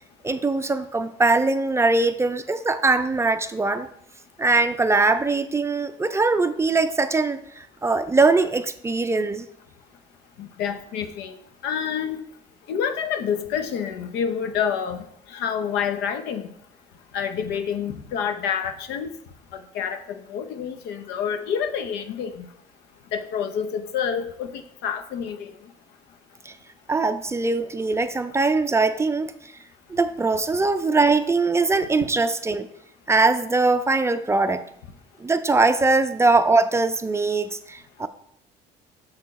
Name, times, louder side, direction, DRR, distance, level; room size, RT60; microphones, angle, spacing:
voice 1, 0.2-3.9 4.4-9.5 26.5-26.6 26.9-29.5 29.9-32.7 33.1-34.6 35.2-38.1, right 3 dB, 15° right, 10 dB, 0.4 m, -21 dB
voice 2, 10.4-11.4 11.6-12.2 12.7-15.0 15.3-16.5 17.1-19.1 19.7-22.5 23.1-25.5, left 7 dB, 85° left, 8 dB, 0.7 m, -28 dB
6.6 x 4.4 x 4.1 m, 0.70 s
cardioid pair, 110°, 17 cm